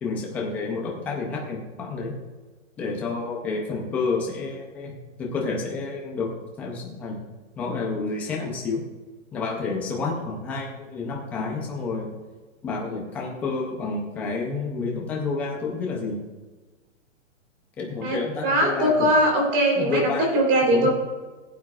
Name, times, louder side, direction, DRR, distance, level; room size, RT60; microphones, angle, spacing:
voice 1, 0.0-2.1 2.8-4.9 5.2-6.3 6.6-7.2 7.6-8.8 9.3-12.1 12.6-16.2 17.8-19.1 19.8-20.3 20.6-20.9, left 4 dB, 5° left, -1 dB, 0.4 m, -29 dB
voice 2, 18.0-20.9, right 1 dB, 25° right, 1 dB, 3.4 m, -21 dB
19.5 x 8.5 x 2.4 m, 1.3 s
hypercardioid pair, 155°, 39 cm